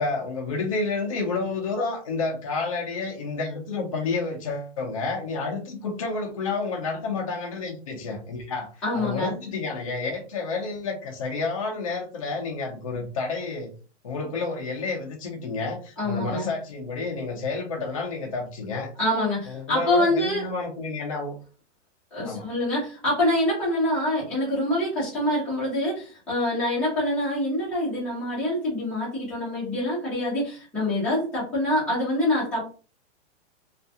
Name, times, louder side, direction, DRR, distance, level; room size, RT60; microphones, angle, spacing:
voice 1, 0.0-13.7 14.0-18.9 19.5-21.4 22.2-22.5, left 3 dB, 30° left, 1 dB, 0.4 m, -30 dB
voice 2, 8.8-9.3 16.0-16.5 19.0-20.4 22.1-32.6, left 1 dB, 5° left, -10 dB, 0.8 m, -25 dB
2.3 x 2.2 x 2.6 m, 0.36 s
supercardioid pair, 180°, 35 cm